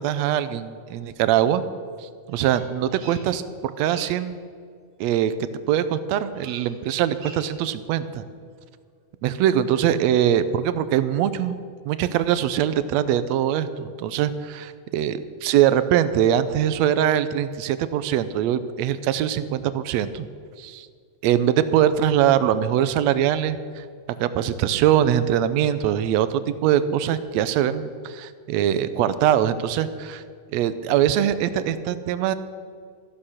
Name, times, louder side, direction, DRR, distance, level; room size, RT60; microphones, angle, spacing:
voice 1, 0.0-1.6 2.0-4.4 5.0-5.3 5.7-8.2 9.2-11.6 11.9-20.3 20.6-20.9 21.2-23.8 24.2-30.2 30.5-32.3, right 10 dB, 75° right, 13 dB, 1.7 m, -22 dB
Bird vocalization bird call bird song, 2.3-3.5 3.8-4.3 6.3-6.8 7.1-7.7, right 4 dB, 50° right, 1.9 m, -45 dB
14.5 x 11.5 x 6.5 m, 2.1 s
omnidirectional pair, 3.5 m